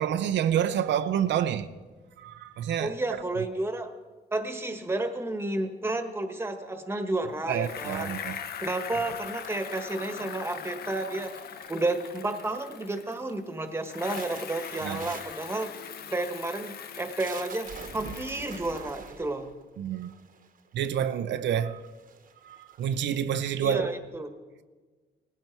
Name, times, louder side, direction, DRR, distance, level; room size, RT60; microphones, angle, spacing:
voice 1, 0.0-1.7 2.2-3.0 7.5-8.4 14.8-15.0 19.8-20.1 20.7-21.8 22.4-23.9, right 9 dB, 85° right, 0.7 m, -28 dB
voice 2, 2.8-3.9 4.3-8.2 8.6-11.4 11.7-15.7 16.1-19.5 23.6-24.3, right 2 dB, 15° right, 1.3 m, -31 dB
Bicycle, 7.6-13.4 13.8-19.1, left 8 dB, 60° left, 0.8 m, -41 dB
sound 1, 9.4-10.5 11.2-11.8 12.1-12.6 13.0-13.3 13.7-20.7 21.4-21.5 21.8-23.4, right 6 dB, 50° right, 1.1 m, -46 dB
19.0 x 15.5 x 4.6 m
cardioid pair, 140°, 18 cm